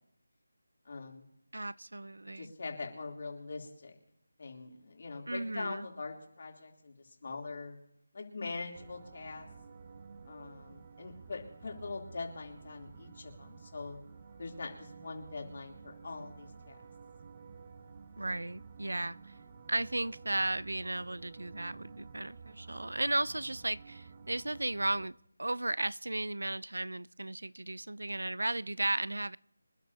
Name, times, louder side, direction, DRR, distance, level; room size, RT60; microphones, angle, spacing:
voice 1, 0.8-1.2 2.4-3.9 4.4-7.8 8.1-9.5 10.2-14.0 14.4-16.8, left 3 dB, 50° left, 3.1 m, -43 dB
voice 2, 1.5-2.5 5.3-5.9 18.2-19.2 19.7-29.4, right 2 dB, 90° right, 0.4 m, -35 dB
sound 1, 8.7-25.1, right 5 dB, 30° right, 0.8 m, -52 dB
26.5 x 11.0 x 2.8 m
figure-of-eight pair, 170°, 0 cm